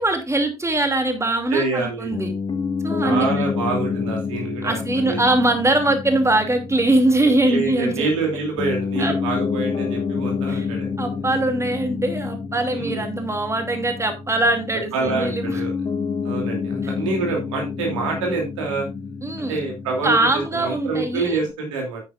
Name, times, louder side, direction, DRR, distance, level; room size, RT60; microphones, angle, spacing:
voice 1, 0.0-2.3 2.8-3.3 4.6-8.1 9.0-9.1 10.5-10.7 11.0-15.6 16.8-16.9 19.2-19.6 20.0-21.4, right 2 dB, 15° right, 6 dB, 2.7 m, -22 dB
voice 2, 1.5-2.1 3.0-5.2 7.5-10.9 12.7-13.0 14.9-15.7 16.2-18.9 19.4-22.0, right 3 dB, 75° right, 1 dB, 3.0 m, -26 dB
Piano, 2.1-21.5, left 5 dB, 30° left, 2.6 m, -29 dB
9.6 x 9.4 x 2.5 m, 0.25 s
figure-of-eight pair, 45°, 16 cm